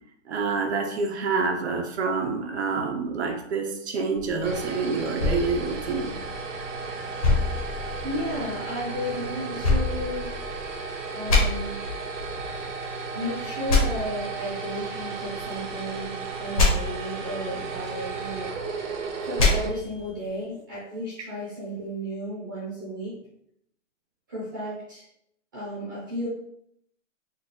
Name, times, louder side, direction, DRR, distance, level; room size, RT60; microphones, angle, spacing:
voice 1, 0.3-6.2, right 4 dB, 60° right, 3 dB, 0.7 m, -27 dB
sound 1, 4.1-20.4, right 4 dB, 80° right, 1.1 m, -34 dB
sound 2, 5.2-6.6 7.2-8.4 9.6-10.8 11.3-11.4 13.7-13.8 16.6-16.7 19.4-19.5, left 4 dB, 25° left, 0.8 m, -24 dB
voice 2, 8.0-10.3 11.1-11.8 13.1-18.5 19.2-23.2 24.3-25.1 25.5-26.3, equal, 15° right, -8 dB, 0.6 m, -33 dB
4.0 x 2.2 x 3.7 m, 0.72 s
hypercardioid pair, 175°, 39 cm